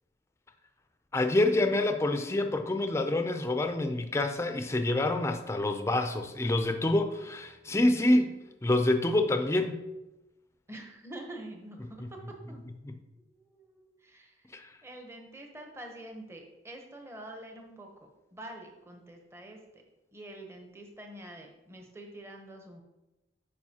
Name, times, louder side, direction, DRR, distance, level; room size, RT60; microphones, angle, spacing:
voice 1, 1.1-8.3 8.6-9.7 12.0-12.1 14.5-14.7, left 2 dB, 15° left, 7 dB, 0.4 m, -27 dB
voice 2, 10.7-12.6 13.3-17.9 18.3-19.8 20.1-22.8, right 1 dB, 15° right, 3 dB, 0.8 m, -46 dB
9.4 x 4.9 x 2.8 m, 0.99 s
head